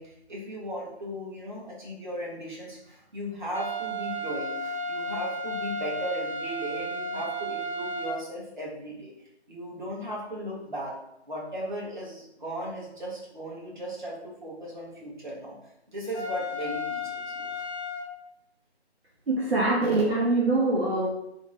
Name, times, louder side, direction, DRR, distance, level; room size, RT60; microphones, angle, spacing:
voice 1, 0.0-9.1 9.5-10.9 11.3-15.6 15.9-17.7, equal, 45° right, -5 dB, 1.4 m, -37 dB
sound 1, 3.5-8.2 16.1-18.1, equal, 80° left, 0.9 m, -33 dB
voice 2, 19.3-21.1, right 2 dB, 65° right, -4 dB, 0.9 m, -24 dB
3.6 x 2.2 x 3.6 m, 0.82 s
figure-of-eight pair, 155°, 33 cm